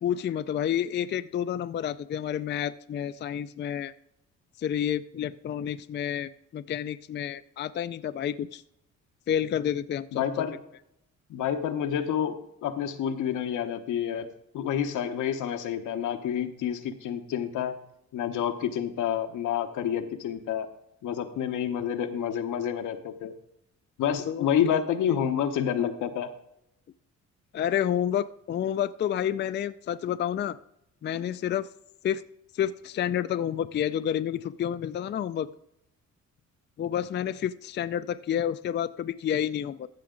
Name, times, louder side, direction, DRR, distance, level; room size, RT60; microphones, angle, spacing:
voice 1, 0.0-3.9 4.6-8.6 9.3-10.5 24.3-24.8 27.5-30.6 31.0-31.7 32.0-32.2 32.5-35.5 36.8-39.9, left 10 dB, 35° left, 13 dB, 0.4 m, -29 dB
voice 2, 10.1-10.6 11.3-14.3 14.5-17.8 18.1-20.7 21.0-23.3 24.0-26.3, left 9 dB, 80° left, 7 dB, 1.1 m, -29 dB
14.5 x 5.9 x 3.8 m, 0.79 s
cardioid pair, 90°, 30 cm